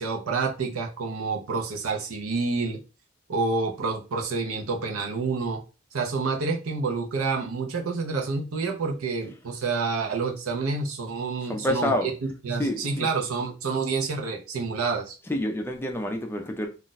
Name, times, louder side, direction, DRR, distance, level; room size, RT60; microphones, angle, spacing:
voice 1, 0.0-2.8 3.3-5.6 5.9-12.1 12.4-15.2, right 4 dB, 85° right, 0.6 m, -28 dB
voice 2, 11.5-12.1 12.6-13.1 15.3-16.7, left 1 dB, 10° left, 0.4 m, -28 dB
2.4 x 2.1 x 3.9 m
head